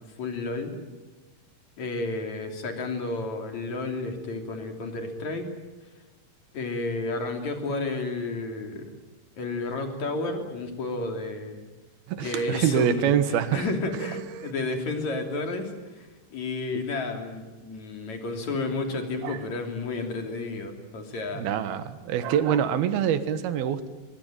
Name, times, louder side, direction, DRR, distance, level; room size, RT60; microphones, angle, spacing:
voice 1, 0.2-0.7 1.8-5.5 6.5-8.9 9.4-11.6 12.2-21.5, left 3 dB, 45° left, 4 dB, 4.1 m, -31 dB
voice 2, 12.1-13.7 14.0-14.5 19.2-19.4 21.3-23.9, right 9 dB, 70° right, 12 dB, 3.1 m, -25 dB
23.5 x 22.0 x 9.0 m, 1.2 s
omnidirectional pair, 4.9 m